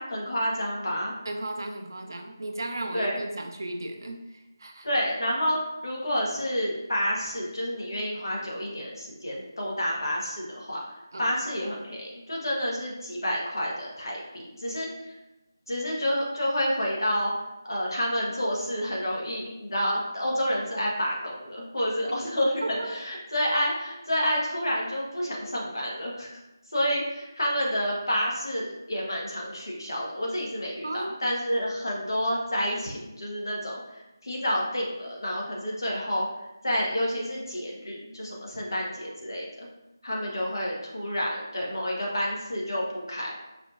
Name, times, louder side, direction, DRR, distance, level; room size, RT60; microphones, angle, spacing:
voice 1, 0.0-1.1 2.9-3.2 4.8-5.6 5.8-10.8 11.2-14.9 15.7-17.3 17.7-26.3 26.7-36.3 36.6-39.7 40.0-43.3, equal, 75° left, -3 dB, 1.4 m, -29 dB
voice 2, 1.3-4.9 11.1-11.3 22.6-22.9 30.8-31.1 40.3-40.5, right 1 dB, 60° right, 4 dB, 0.6 m, -35 dB
5.0 x 2.8 x 2.5 m, 0.97 s
figure-of-eight pair, 165°, 2 cm